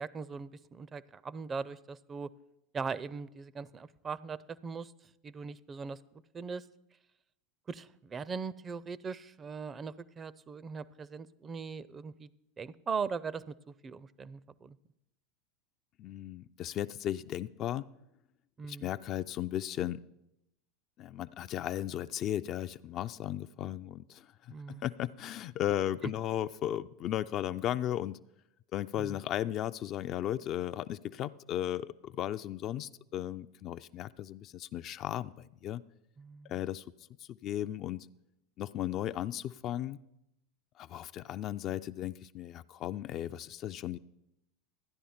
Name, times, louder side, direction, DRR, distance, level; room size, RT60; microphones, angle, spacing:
voice 1, 0.0-2.3 2.7-4.9 5.2-6.0 6.3-6.6 7.7-12.3 12.6-13.5 13.8-14.8 18.6-18.9 24.5-24.8 29.0-29.2 36.2-36.5, right 5 dB, 25° right, 19 dB, 0.5 m, -40 dB
voice 2, 16.0-17.9 18.6-20.0 21.0-28.2 28.7-35.8 36.5-36.8 37.2-38.1 38.6-40.0 40.8-44.0, left 11 dB, 45° left, 12 dB, 0.3 m, -36 dB
12.5 x 10.0 x 4.3 m, 0.84 s
hypercardioid pair, 85°, 0 cm